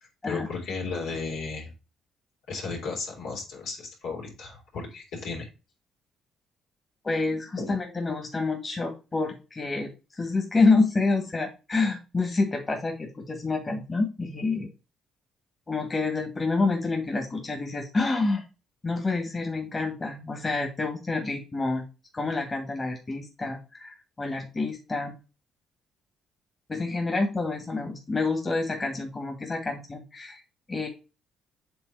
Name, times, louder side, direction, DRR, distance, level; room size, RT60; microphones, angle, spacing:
voice 1, 0.2-1.7 2.5-5.5 7.6-7.7, left 4 dB, 80° left, -3 dB, 3.3 m, -34 dB
voice 2, 7.0-14.7 15.7-18.4 18.8-21.8 22.1-25.2 26.7-30.4 30.7-30.9, left 3 dB, 30° left, 3 dB, 2.2 m, -28 dB
7.8 x 3.7 x 4.9 m, 0.31 s
supercardioid pair, 55°, 0 cm